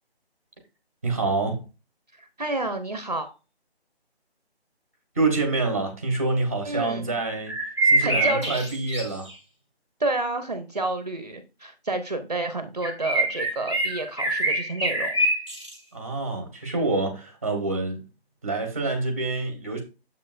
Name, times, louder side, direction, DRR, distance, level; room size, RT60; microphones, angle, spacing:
voice 1, 1.0-1.6 5.1-7.6 7.8-9.3 15.9-18.0 18.4-19.8, right 3 dB, 15° right, 1.0 m, -26 dB
voice 2, 2.1-3.3 6.6-7.1 8.0-8.6 10.0-15.1, right 2 dB, 40° right, 0.8 m, -29 dB
sound 1, 7.5-9.3 12.8-15.7, right 1 dB, 10° left, 1.1 m, -24 dB
7.1 x 6.6 x 2.5 m
figure-of-eight pair, 175°, 32 cm